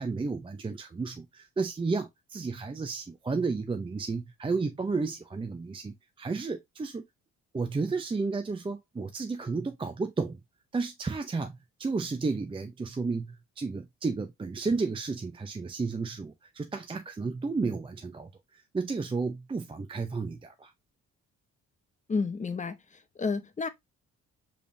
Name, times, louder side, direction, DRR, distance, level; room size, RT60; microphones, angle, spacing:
voice 1, 0.0-7.0 7.5-10.4 10.7-20.7, right 4 dB, 15° right, 0.5 m, -32 dB
voice 2, 22.1-22.8 23.2-23.7, left 4 dB, 25° left, 0.7 m, -30 dB
5.0 x 3.4 x 2.5 m
cardioid pair, 90°, 30 cm